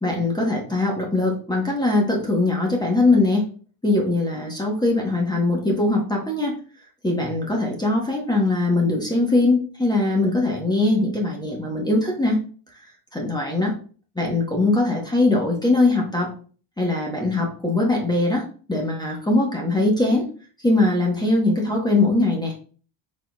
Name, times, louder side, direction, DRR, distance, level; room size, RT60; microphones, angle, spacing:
voice 1, 0.0-3.5 3.8-6.5 7.0-12.4 13.1-13.7 14.2-16.3 16.8-20.3 20.6-22.5, left 2 dB, 10° left, -1 dB, 1.0 m, -21 dB
4.3 x 4.0 x 2.3 m, 0.40 s
cardioid pair, 115°, 50 cm